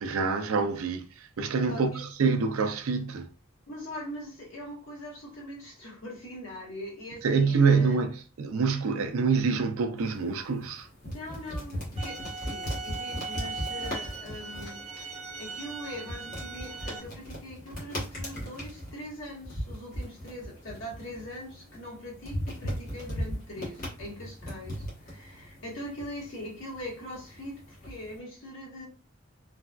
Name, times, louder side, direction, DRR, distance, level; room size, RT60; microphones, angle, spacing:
voice 1, 0.0-3.3 7.2-10.9, right 5 dB, 75° right, 0.4 m, -26 dB
voice 2, 1.6-2.0 3.7-8.0 11.0-28.8, equal, 65° left, 1.4 m, -42 dB
sound 1, 10.0-28.2, equal, 40° left, 1.2 m, -39 dB
sound 2, 12.0-17.0, right 4 dB, 30° right, 0.6 m, -39 dB
3.2 x 2.2 x 2.4 m
head